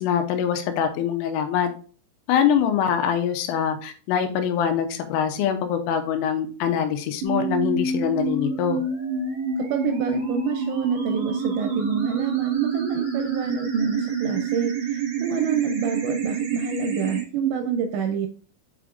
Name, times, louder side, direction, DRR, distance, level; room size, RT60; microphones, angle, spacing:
voice 1, 0.0-1.7 2.3-8.8, left 8 dB, 90° left, 7 dB, 3.3 m, -24 dB
sound 1, 7.2-17.2, right 5 dB, 55° right, 1.7 m, -27 dB
voice 2, 9.6-18.3, right 6 dB, 80° right, 5 dB, 2.6 m, -27 dB
7.8 x 5.0 x 2.5 m, 0.41 s
omnidirectional pair, 5.7 m